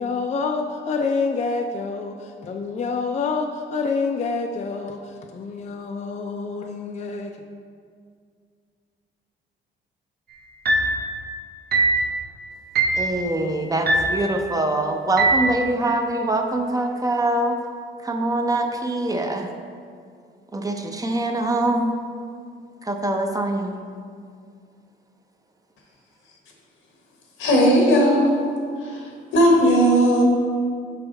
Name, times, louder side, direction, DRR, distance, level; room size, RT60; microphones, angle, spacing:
voice 1, 0.0-7.3, left 4 dB, 35° left, 3 dB, 0.4 m, -27 dB
sound 1, 10.7-11.0 11.7-12.0 12.7-13.1 13.9-14.2 15.2-15.5, right 2 dB, 50° right, 0.7 m, -20 dB
voice 2, 13.0-17.6 18.0-19.5 20.5-22.0 22.8-23.8, right 1 dB, 20° right, 4 dB, 0.5 m, -24 dB
voice 3, 27.4-28.4 28.8-30.2, equal, 85° left, -1 dB, 1.3 m, -17 dB
5.8 x 4.9 x 3.9 m, 2.1 s
cardioid pair, 90°, 20 cm